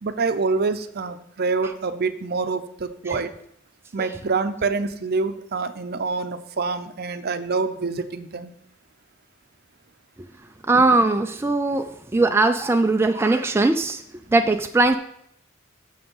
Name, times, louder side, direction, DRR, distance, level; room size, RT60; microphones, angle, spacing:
voice 1, 0.0-3.3 3.9-8.5, right 4 dB, 50° right, 10 dB, 0.6 m, -26 dB
voice 2, 10.6-14.0 14.3-14.9, right 2 dB, 10° right, 5 dB, 0.4 m, -20 dB
7.0 x 6.5 x 5.4 m, 0.73 s
head